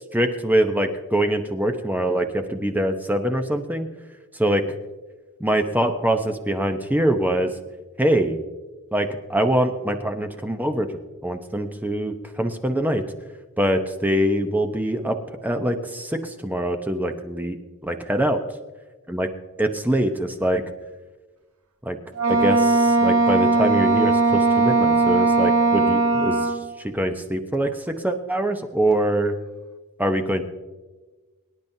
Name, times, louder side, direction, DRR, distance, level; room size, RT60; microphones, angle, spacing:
voice 1, 0.1-3.9 4.3-4.6 5.4-7.5 8.0-8.4 8.9-10.9 11.2-13.0 13.6-17.6 17.8-18.4 19.1-19.3 19.6-20.6 21.8-22.0 22.3-29.3 30.0-30.4, right 1 dB, 10° right, 6 dB, 0.8 m, -24 dB
Wind instrument woodwind instrument, 22.1-26.7, right 3 dB, 75° right, 1.3 m, -19 dB
24.0 x 10.5 x 2.7 m, 1.2 s
head